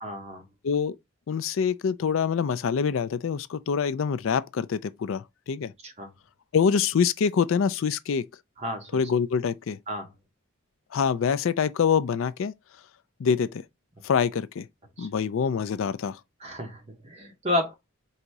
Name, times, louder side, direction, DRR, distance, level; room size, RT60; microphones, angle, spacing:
voice 1, 0.0-0.4 5.8-6.1 8.6-8.9 9.9-10.1 15.0-15.1 16.4-17.7, left 1 dB, 30° right, 1.1 m, -31 dB
voice 2, 0.6-1.0 1.3-5.7 6.5-8.3 8.9-9.8 10.9-12.5 13.2-13.6 14.0-14.7 15.0-16.2, left 6 dB, 70° left, 0.4 m, -25 dB
4.0 x 2.8 x 4.6 m
head